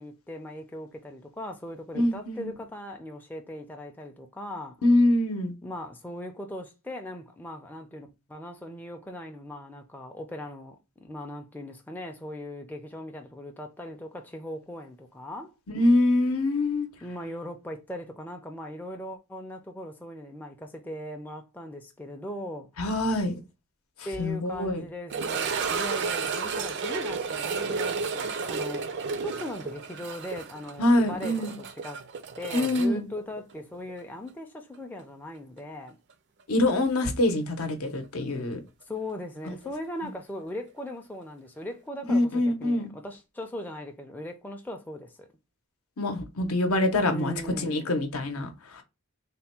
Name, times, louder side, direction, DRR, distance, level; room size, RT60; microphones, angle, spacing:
voice 1, 0.0-4.8 5.6-15.5 17.0-22.7 24.1-32.0 32.4-36.0 38.9-45.3 47.1-47.9, left 1 dB, 10° left, 0.4 m, -39 dB
voice 2, 1.9-2.5 4.8-5.5 15.7-16.9 22.8-23.4 24.2-24.8 30.8-31.6 32.5-33.1 36.5-38.6 39.5-39.6 42.1-42.9 46.0-48.8, left 1 dB, 75° left, 0.7 m, -25 dB
sound 1, 25.1-34.0 34.3-34.4 35.0-35.1 37.7-37.8, right 5 dB, 50° right, 0.4 m, -32 dB
3.4 x 2.2 x 4.2 m
head